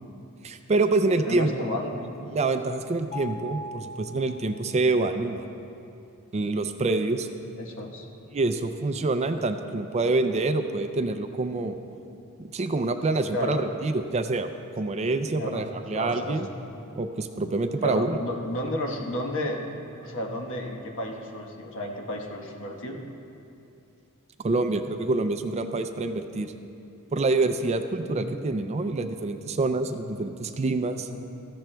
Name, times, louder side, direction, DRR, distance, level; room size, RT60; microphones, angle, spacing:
voice 1, 0.4-1.5 2.2-5.4 6.3-7.3 8.3-11.8 12.4-14.5 14.8-16.5 17.0-18.2 24.4-26.5 27.1-31.1, right 3 dB, 30° right, 8 dB, 0.4 m, -26 dB
voice 2, 1.2-2.1 7.6-8.0 13.3-13.6 15.3-16.5 17.8-23.0 27.9-28.3 31.1-31.2, left 1 dB, 60° left, 1 dB, 1.2 m, -32 dB
Mallet percussion, 3.1-5.1, left 1 dB, 40° left, 1.8 m, -40 dB
16.5 x 14.0 x 2.2 m, 2.7 s
head